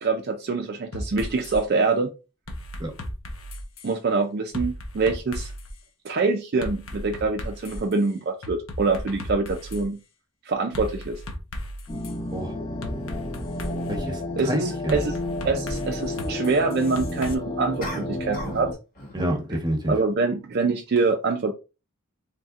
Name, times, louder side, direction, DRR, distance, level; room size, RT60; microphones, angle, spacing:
voice 1, 0.0-2.1 3.8-5.5 6.0-10.0 10.5-11.2 14.4-15.2 15.4-18.8 19.9-21.5, right 3 dB, 50° right, 0.4 m, -25 dB
sound 1, 0.9-1.6 2.5-3.9 4.5-5.7 6.6-7.9 8.4-9.8 10.7-12.1 12.8-14.0 14.9-17.3, left 1 dB, 70° left, 0.9 m, -35 dB
sound 2, 11.9-18.7, left 1 dB, 20° left, 0.9 m, -32 dB
voice 2, 13.9-15.0 19.1-19.9, equal, 20° right, 0.9 m, -28 dB
sound 3, 17.8-18.7 18.9-19.3, left 1 dB, 40° left, 1.3 m, -36 dB
4.1 x 3.3 x 2.4 m
head